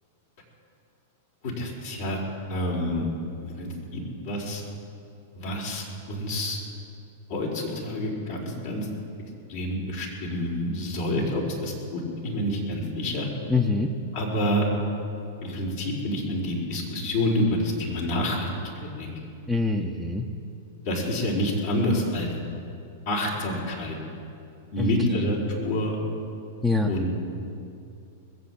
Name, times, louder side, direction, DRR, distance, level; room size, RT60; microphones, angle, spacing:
voice 1, 1.4-2.2 2.5-3.0 3.4-4.6 5.4-6.6 7.3-8.9 9.5-13.3 14.1-14.7 15.4-18.5 18.8-19.1 20.8-22.3 23.0-23.9 24.7-26.0 26.9-27.1, left 1 dB, 60° left, -3 dB, 5.1 m, -28 dB
voice 2, 13.5-13.9 19.5-20.3 24.8-25.3 26.6-26.9, left 3 dB, 5° left, 1 dB, 1.0 m, -25 dB
21.0 x 7.9 x 8.7 m, 2.5 s
hypercardioid pair, 100°, 0 cm